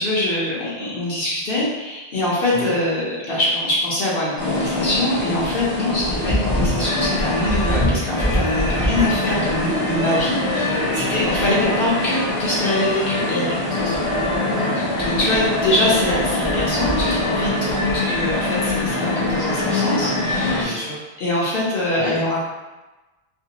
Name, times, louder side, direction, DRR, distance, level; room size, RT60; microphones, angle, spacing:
voice 1, 0.0-13.5 14.8-20.8 21.2-22.4, left 1 dB, 60° left, -6 dB, 0.8 m, -23 dB
sound 1, 4.4-20.7, left 1 dB, 30° left, 0.7 m, -23 dB
voice 2, 6.7-7.1 8.7-8.9 10.9-11.2 13.7-14.0 14.5-14.8 20.6-21.0 21.9-22.2, equal, 30° right, -10 dB, 0.7 m, -33 dB
2.5 x 2.1 x 2.8 m, 1.1 s
omnidirectional pair, 1.1 m